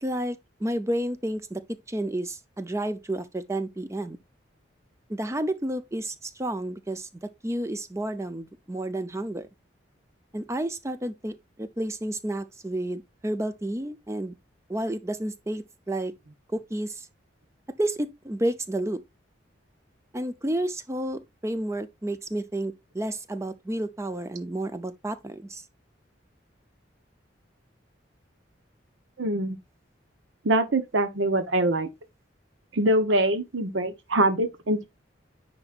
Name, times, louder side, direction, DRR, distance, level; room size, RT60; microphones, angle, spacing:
voice 1, 0.0-4.2 5.1-9.5 10.3-14.4 14.7-16.1 16.5-17.1 17.8-19.0 20.1-25.6, right 1 dB, 15° right, 0.5 m, -31 dB
voice 2, 29.2-29.6 30.4-31.9 32.7-34.9, right 1 dB, 80° right, 1.0 m, -24 dB
9.5 x 4.0 x 2.5 m
head